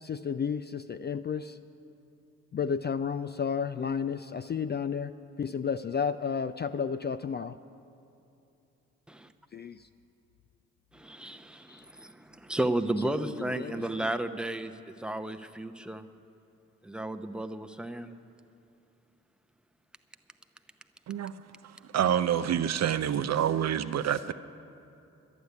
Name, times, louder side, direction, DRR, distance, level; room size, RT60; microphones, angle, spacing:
voice 1, 0.0-1.6 2.5-7.6 9.5-9.9 11.7-11.9 13.0-14.1, left 6 dB, 30° left, 11 dB, 0.4 m, -32 dB
voice 2, 10.9-14.7 15.0-16.0 16.8-18.1 21.3-21.4, right 1 dB, ahead, 7 dB, 0.7 m, -33 dB
voice 3, 21.6-24.3, right 9 dB, 50° right, 12 dB, 0.5 m, -27 dB
11.5 x 8.3 x 9.6 m, 2.7 s
hypercardioid pair, 45°, 36 cm